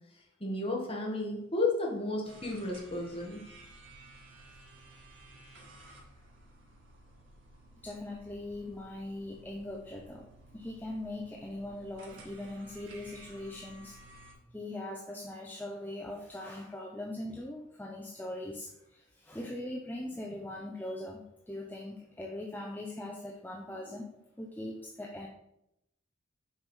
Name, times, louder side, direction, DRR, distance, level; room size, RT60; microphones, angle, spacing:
voice 1, 0.4-3.4, left 2 dB, 30° left, -2 dB, 1.7 m, -32 dB
sound 1, 2.2-14.3, right 2 dB, 75° right, 1.7 m, -55 dB
voice 2, 7.8-10.3 10.5-14.0 14.5-24.1 24.4-25.3, left 1 dB, 10° left, 0 dB, 0.6 m, -41 dB
6.5 x 4.8 x 5.5 m, 0.82 s
head